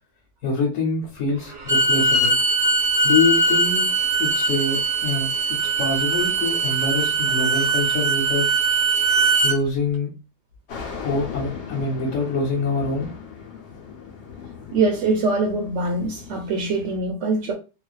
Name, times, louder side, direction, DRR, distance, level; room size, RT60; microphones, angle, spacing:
voice 1, 0.4-2.4 3.0-3.8 4.2-8.5 9.4-10.1 11.0-13.1, left 3 dB, 85° left, 1.1 m, -25 dB
Bowed string instrument, 1.5-9.6, right 3 dB, 45° right, 0.4 m, -21 dB
sound 1, 10.7-17.0, left 6 dB, 65° left, 0.8 m, -38 dB
voice 2, 14.7-17.5, right 3 dB, 70° right, 0.9 m, -23 dB
2.4 x 2.3 x 2.2 m
omnidirectional pair, 1.3 m